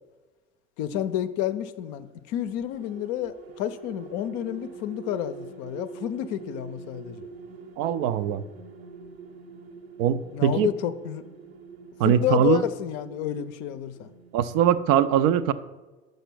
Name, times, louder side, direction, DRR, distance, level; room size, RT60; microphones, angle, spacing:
voice 1, 0.8-7.3 10.3-11.2 12.0-14.1, left 11 dB, 50° left, 11 dB, 0.5 m, -30 dB
sound 1, 2.5-14.6, right 5 dB, 80° right, 0.8 m, -45 dB
voice 2, 7.8-8.4 10.0-10.7 12.0-12.6 14.3-15.5, right 9 dB, 50° right, 13 dB, 0.4 m, -22 dB
5.9 x 5.2 x 6.0 m, 1.2 s
figure-of-eight pair, 60°, 32 cm